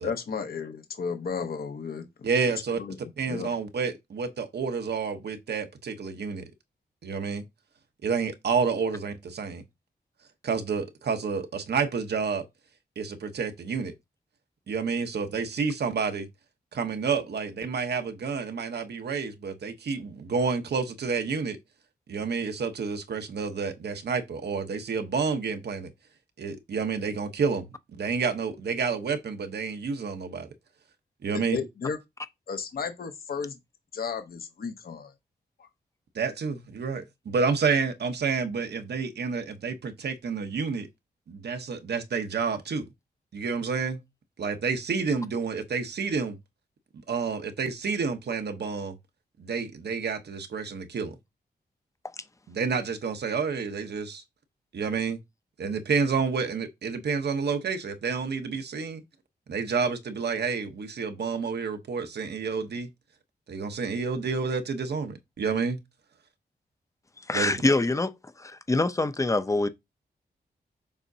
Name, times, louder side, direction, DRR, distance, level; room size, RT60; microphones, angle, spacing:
voice 1, 0.0-2.1 2.8-3.0 3.3-3.5 31.3-32.0 32.5-33.6 33.9-35.1, left 5 dB, 60° left, 0.9 m, -33 dB
voice 2, 2.2-2.8 3.2-6.5 7.0-7.4 8.0-9.6 10.4-12.5 13.0-13.9 14.7-16.3 16.7-21.6 22.1-25.9 26.4-27.6 28.0-30.5 31.2-31.6 36.1-40.9 41.3-42.9 43.3-44.0 44.4-46.4 46.9-49.0 49.4-51.1 52.5-54.2 54.7-55.2 55.6-59.0 59.5-62.9 63.5-65.8 67.3-67.5, right 5 dB, 70° right, 1.0 m, -29 dB
voice 3, 67.3-69.7, left 2 dB, 20° left, 0.6 m, -25 dB
7.1 x 5.0 x 2.8 m
wide cardioid pair, 110°, 18 cm